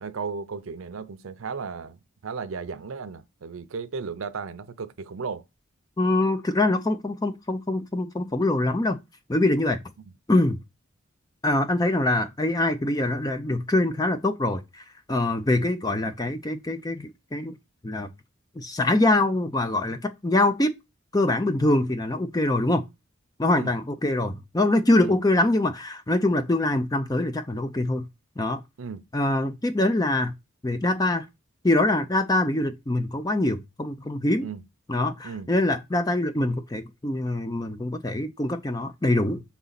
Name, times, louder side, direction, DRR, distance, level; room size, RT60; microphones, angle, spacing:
voice 1, 0.0-5.4 23.5-23.7 25.0-25.2 28.8-29.0 34.4-34.6 35.2-35.5, right 5 dB, 80° right, 0.6 m, -35 dB
voice 2, 6.0-9.0 9.3-9.8 10.3-10.6 11.4-14.6 15.1-17.5 17.8-18.1 18.6-20.7 21.1-22.8 23.4-28.0 28.4-28.6 29.1-30.3 30.6-31.3 31.6-34.5 34.9-39.4, left 2 dB, 20° left, 0.5 m, -24 dB
5.9 x 4.1 x 4.0 m
head